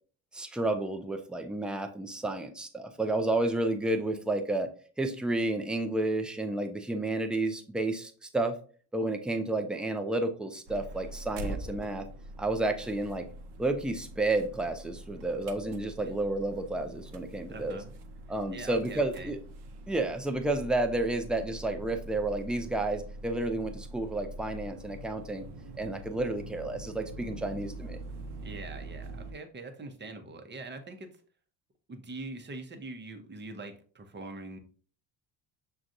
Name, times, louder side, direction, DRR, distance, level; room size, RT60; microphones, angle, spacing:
voice 1, 0.3-4.7 5.0-8.6 8.9-12.1 12.4-13.3 13.6-17.8 18.3-19.4 19.9-25.5 25.8-28.0, right 2 dB, ahead, 5 dB, 0.4 m, -31 dB
sound 1, 10.7-29.3, right 1 dB, 60° right, 0.7 m, -44 dB
voice 2, 17.5-17.9 18.5-19.3 28.4-31.1 31.9-34.6, right 3 dB, 25° right, 6 dB, 0.8 m, -43 dB
6.1 x 2.4 x 2.6 m, 0.42 s
supercardioid pair, 85°, 46 cm